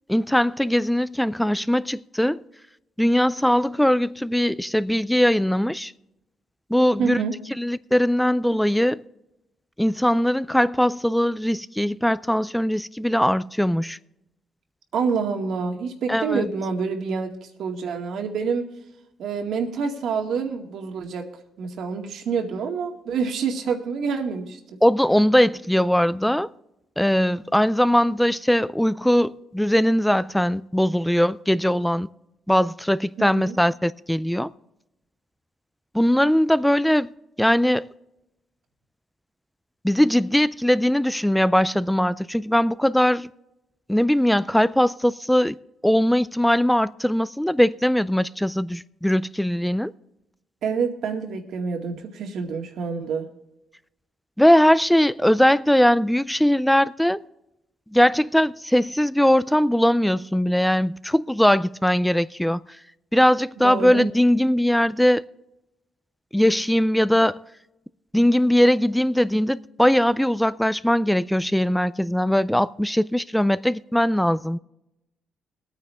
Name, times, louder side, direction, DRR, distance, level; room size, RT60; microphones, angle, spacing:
voice 1, 0.1-2.4 3.0-5.9 6.7-7.2 7.6-9.0 9.8-14.0 16.1-16.5 24.8-26.5 27.0-32.1 32.5-34.5 35.9-37.1 37.4-37.9 39.8-43.3 43.9-45.6 45.8-49.9 54.4-57.2 57.9-62.6 63.1-65.2 66.3-67.4 68.1-74.6, equal, 5° left, 0.4 m, -20 dB
voice 2, 7.0-7.4 14.9-18.7 19.2-21.3 21.6-24.6 33.2-33.6 50.6-53.3 63.6-64.1, right 5 dB, 70° right, 2.1 m, -27 dB
22.0 x 9.2 x 3.4 m
cardioid pair, 90°, 0 cm